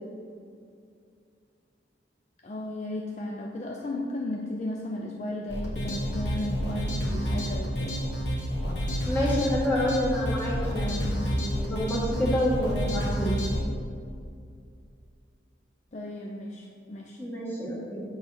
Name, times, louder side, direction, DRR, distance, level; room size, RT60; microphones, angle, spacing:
voice 1, 2.4-8.0 15.9-17.2, left 1 dB, 40° left, 0 dB, 0.4 m, -35 dB
sound 1, 5.5-13.6, equal, 75° left, 1.2 m, -29 dB
voice 2, 9.0-13.4 17.2-18.0, equal, 10° left, -6 dB, 1.7 m, -28 dB
6.9 x 3.9 x 5.6 m, 2.3 s
head